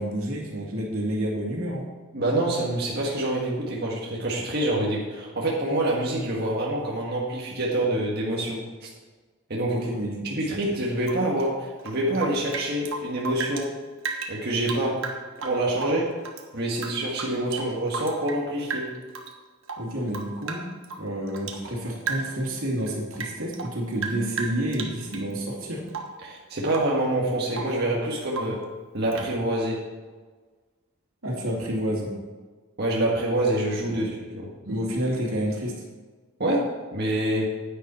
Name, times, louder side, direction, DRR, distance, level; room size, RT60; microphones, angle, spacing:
voice 1, 0.0-1.8 9.7-10.5 19.8-20.6 21.0-25.8 31.2-32.1 33.9-34.0 34.6-35.7, right 1 dB, 90° right, -1 dB, 2.6 m, -29 dB
voice 2, 2.1-8.9 9.5-9.9 10.4-13.7 14.3-15.0 15.4-16.1 16.5-18.9 26.2-28.6 28.9-29.8 32.8-34.5 36.4-37.5, right 1 dB, 50° right, -3 dB, 1.6 m, -26 dB
Rain / Drip, 11.0-13.7 14.0-16.4 16.8-18.4 18.7-19.3 19.6-21.7 22.0-22.5 22.8-25.3 25.9-26.2 26.7-27.0 27.3-27.8 28.3-28.7 29.1-29.3, right 4 dB, 65° right, 1.3 m, -35 dB
9.9 x 9.4 x 4.4 m, 1.4 s
head